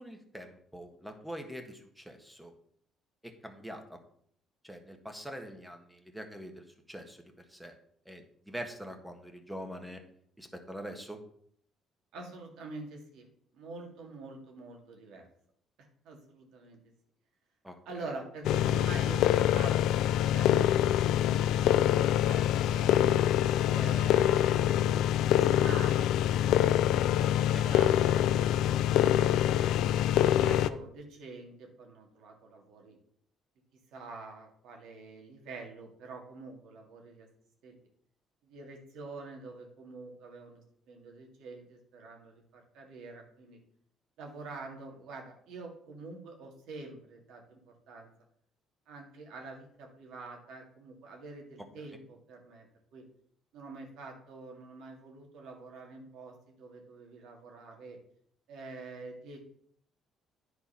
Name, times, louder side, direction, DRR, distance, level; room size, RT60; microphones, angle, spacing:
voice 1, 0.0-2.5 3.2-4.0 4.6-7.7 8.0-10.0 10.4-11.2 17.6-17.8 27.2-27.6, equal, 5° right, 4 dB, 1.5 m, -44 dB
voice 2, 12.1-13.3 13.5-15.3 16.0-16.8 17.9-20.0 20.3-20.8 21.1-22.9 23.7-26.6 26.8-28.2 28.5-29.7 30.3-33.0 33.9-37.3 37.6-37.8 38.4-43.6 44.2-48.1 48.9-52.7 52.9-53.0 53.5-58.0 58.5-59.4, right 3 dB, 80° right, 2 dB, 2.4 m, -46 dB
sound 1, 18.4-30.7, left 11 dB, 75° left, 0.4 m, -25 dB
10.0 x 4.7 x 5.7 m, 0.65 s
cardioid pair, 110°, 0 cm